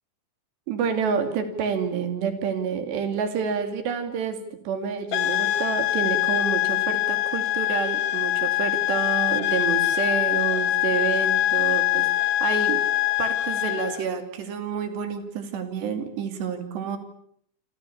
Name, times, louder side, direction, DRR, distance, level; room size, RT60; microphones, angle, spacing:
voice 1, 0.7-4.4 4.7-12.8 13.2-17.0, right 6 dB, 70° right, 8 dB, 4.7 m, -28 dB
sound 1, 5.1-14.0, left 14 dB, 65° left, 2.2 m, -24 dB
28.0 x 26.5 x 7.1 m, 0.67 s
omnidirectional pair, 5.2 m